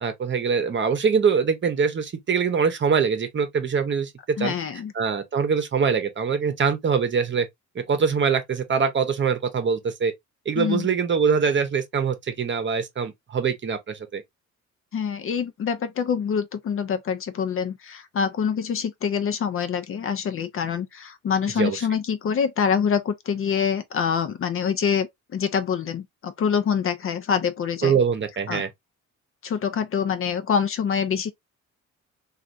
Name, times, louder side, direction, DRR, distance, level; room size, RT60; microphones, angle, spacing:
voice 1, 0.0-4.1 4.4-4.5 4.9-7.5 7.7-10.1 10.5-14.2 21.6-21.8 27.8-28.7, right 6 dB, 40° right, 0.8 m, -23 dB
voice 2, 4.4-4.9 10.6-10.9 14.9-27.9 28.5-28.6 29.4-31.3, left 7 dB, 45° left, 0.6 m, -25 dB
3.2 x 2.5 x 2.5 m
cardioid pair, 90°, 30 cm